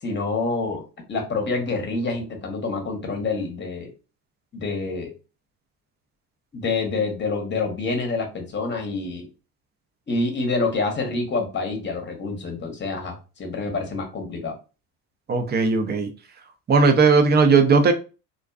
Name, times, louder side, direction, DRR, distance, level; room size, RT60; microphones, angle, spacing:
voice 1, 0.0-0.8 1.1-3.9 4.5-5.1 6.5-9.3 10.1-14.5, left 3 dB, 25° left, 3 dB, 1.0 m, -27 dB
voice 2, 15.3-16.1 16.7-17.9, right 4 dB, 20° right, 7 dB, 0.5 m, -17 dB
2.5 x 2.2 x 2.3 m, 0.32 s
hypercardioid pair, 75°, 48 cm